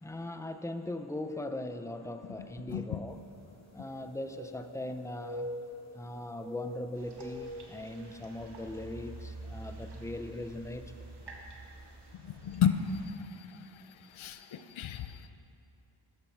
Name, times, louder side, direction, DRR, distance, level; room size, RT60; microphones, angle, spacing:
voice 1, 0.0-3.2 3.7-5.5 5.9-10.9 11.2-11.4, left 1 dB, 5° left, 8 dB, 0.8 m, -40 dB
voice 2, 2.7-3.0 12.2-12.8 13.4-13.6 14.1-15.2, left 9 dB, 85° left, 9 dB, 0.8 m, -31 dB
sound 1, 3.2-3.3 3.6-4.9 5.1-6.0 6.3-8.5 8.9-9.0 9.7-9.9 11.0-11.1 11.4-11.5, left 1 dB, 35° right, 2.6 m, -44 dB
sound 2, 7.0-13.1, right 2 dB, 60° right, 1.8 m, -48 dB
13.0 x 13.0 x 4.7 m, 2.7 s
cardioid pair, 55°, 46 cm